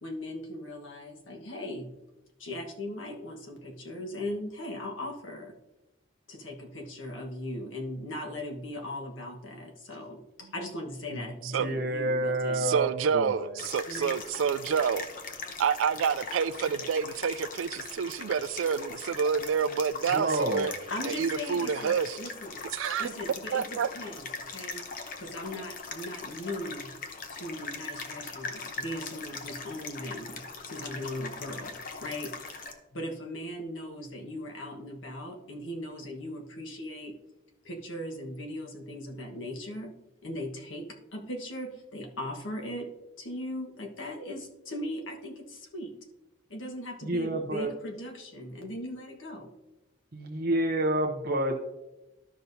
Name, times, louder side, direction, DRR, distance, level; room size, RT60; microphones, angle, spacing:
voice 1, 0.0-1.9 2.4-5.6 6.3-12.7 13.8-14.1 20.9-22.6 23.0-24.8 25.2-27.0 27.3-32.5 32.9-37.1 37.6-39.9 40.2-42.9 43.2-45.9 46.5-49.5, left 1 dB, 85° left, 1.4 m, -39 dB
voice 2, 11.5-12.9 13.1-13.5 20.1-20.7 47.0-47.7 50.1-51.6, right 1 dB, 50° right, 0.7 m, -28 dB
voice 3, 12.6-15.1 15.6-20.7 21.0-22.2 22.7-23.1 23.5-23.9, right 6 dB, 90° right, 0.3 m, -28 dB
sound 1, 13.6-32.7, left 4 dB, 45° left, 0.8 m, -40 dB
13.0 x 5.7 x 2.7 m
head